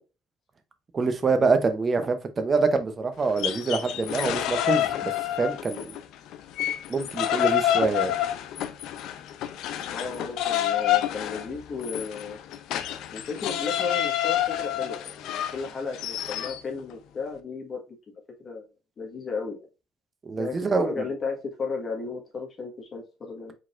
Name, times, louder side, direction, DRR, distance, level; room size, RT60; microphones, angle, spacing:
voice 1, 0.9-5.1 5.4-5.9 6.9-8.1 20.2-21.0, right 4 dB, 25° right, 0.7 m, -25 dB
sound 1, 3.2-6.0 6.3-16.6, left 12 dB, 70° left, 0.5 m, -28 dB
voice 2, 9.9-12.4 13.1-17.8 18.4-18.6 19.0-19.7 20.4-23.5, left 4 dB, 30° left, 1.4 m, -34 dB
5.0 x 3.9 x 2.5 m
cardioid pair, 160°, 0 cm